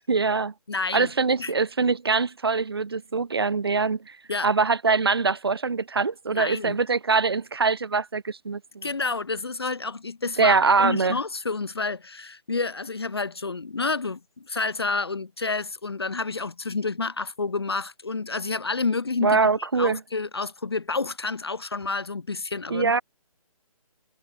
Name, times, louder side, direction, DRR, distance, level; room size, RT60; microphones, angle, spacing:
voice 1, 0.1-0.5 0.9-4.1 4.4-8.9 10.4-11.2 19.2-20.0 22.7-23.0, right 4 dB, 40° right, 1.1 m, -23 dB
voice 2, 0.7-1.1 1.4-1.5 4.3-4.5 6.3-6.8 8.8-23.0, left 4 dB, 40° left, 0.6 m, -29 dB
hypercardioid pair, 180°, 19 cm